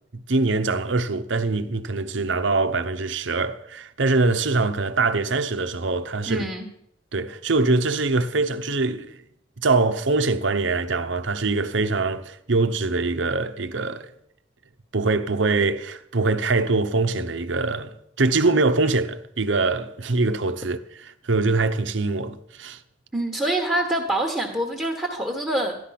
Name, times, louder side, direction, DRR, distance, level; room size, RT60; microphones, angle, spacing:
voice 1, 0.3-6.5 7.1-9.2 9.6-14.1 14.9-22.8, right 3 dB, 75° right, 0.9 m, -23 dB
voice 2, 6.3-6.7 23.1-25.8, right 1 dB, 5° right, 1.4 m, -25 dB
14.0 x 11.0 x 5.8 m
head